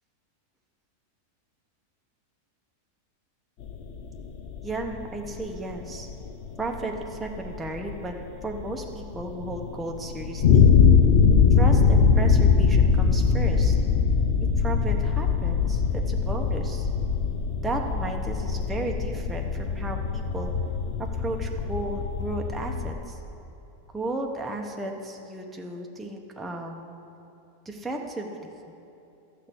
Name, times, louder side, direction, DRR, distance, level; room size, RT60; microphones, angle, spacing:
sound 1, 3.6-22.9, left 5 dB, 55° left, 0.8 m, -22 dB
voice 1, 4.6-6.1 6.6-8.1 8.4-10.7 11.6-13.8 14.6-16.9 17.6-20.5 21.2-23.2 23.9-26.9 27.6-28.5, right 2 dB, ahead, 2 dB, 0.3 m, -34 dB
12.5 x 6.6 x 8.4 m, 2.8 s
omnidirectional pair, 1.7 m